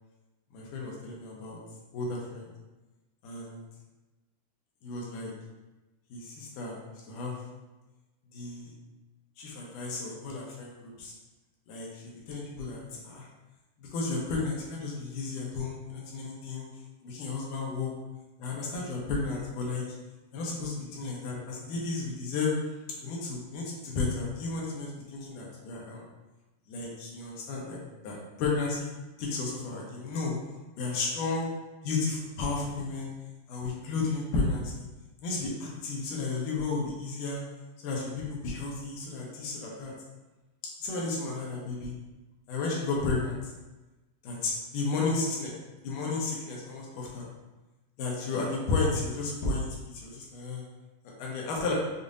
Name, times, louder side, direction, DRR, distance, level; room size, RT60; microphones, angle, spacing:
voice 1, 0.5-1.6 1.9-2.5 3.2-3.6 4.8-5.3 6.1-6.8 7.1-7.4 8.3-8.7 9.4-11.1 11.7-13.3 13.8-16.7 17.0-17.9 18.4-19.8 20.3-22.5 23.0-26.0 26.7-27.8 28.0-28.9 29.2-30.4 30.8-31.5 31.8-33.1 33.5-34.9 35.2-37.4 37.8-39.9 40.8-41.9 42.5-43.4 44.2-45.5 45.8-47.3 48.0-50.6 51.0-51.7, left 3 dB, 80° left, -3 dB, 2.4 m, -33 dB
7.0 x 2.5 x 2.5 m, 1.1 s
omnidirectional pair, 3.7 m